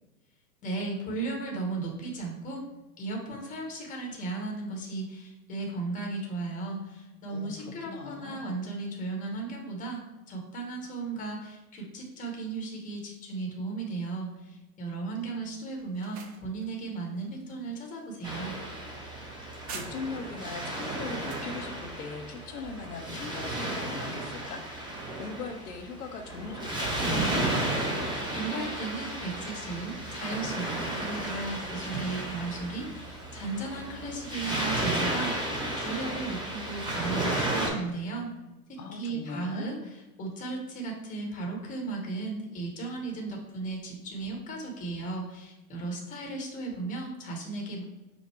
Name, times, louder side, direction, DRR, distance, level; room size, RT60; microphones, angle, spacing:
voice 1, 0.6-2.6 3.0-18.6 28.3-38.3 38.7-39.7 40.2-47.8, right 3 dB, 15° left, 0 dB, 1.0 m, -36 dB
voice 2, 7.3-8.5 19.3-27.6 38.8-39.7, left 4 dB, 75° left, 4 dB, 0.7 m, -40 dB
sound 1, 15.8-20.3 20.8-21.5, right 5 dB, 30° right, 0.4 m, -48 dB
Waves surf, 18.2-37.7, right 1 dB, 10° right, 0.8 m, -33 dB
5.2 x 2.1 x 4.3 m, 1.1 s
figure-of-eight pair, 100°, 45 cm